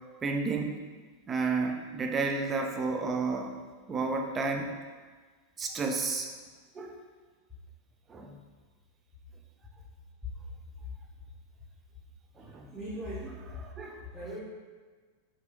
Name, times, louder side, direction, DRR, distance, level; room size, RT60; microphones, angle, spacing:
voice 1, 0.2-0.7 1.3-3.5 3.9-4.7 5.6-6.3 6.7-7.0 8.1-8.4 12.4-12.7 13.8-14.0, right 4 dB, 20° right, 3 dB, 0.4 m, -31 dB
voice 2, 12.7-13.4 14.1-14.4, right 1 dB, 5° right, -10 dB, 0.8 m, -39 dB
2.7 x 2.4 x 3.7 m, 1.4 s
figure-of-eight pair, 90°, 0 cm